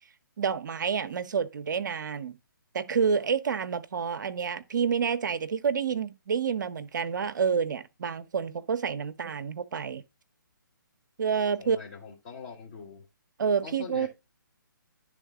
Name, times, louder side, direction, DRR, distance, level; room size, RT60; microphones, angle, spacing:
voice 1, 0.4-2.4 2.7-10.0 11.2-11.8 13.4-14.1, right 6 dB, 60° right, 0.7 m, -28 dB
voice 2, 11.6-13.0 13.6-14.1, left 5 dB, 35° left, 1.6 m, -43 dB
11.0 x 3.6 x 3.6 m
figure-of-eight pair, 140°, 11 cm